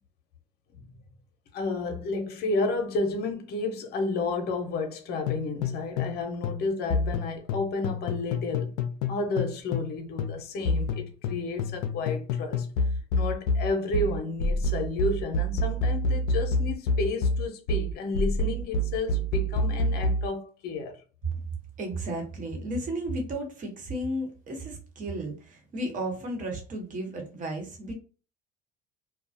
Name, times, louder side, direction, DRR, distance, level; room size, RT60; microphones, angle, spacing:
voice 1, 1.5-8.7 9.1-12.7 13.1-21.0, left 3 dB, 55° left, 0.8 m, -31 dB
sound 1, 5.3-6.2 6.4-9.9 10.2-20.3, left 1 dB, 80° left, 0.4 m, -28 dB
voice 2, 21.8-27.9, right 1 dB, 45° right, 1.1 m, -33 dB
2.3 x 2.2 x 2.6 m
supercardioid pair, 85°, 19 cm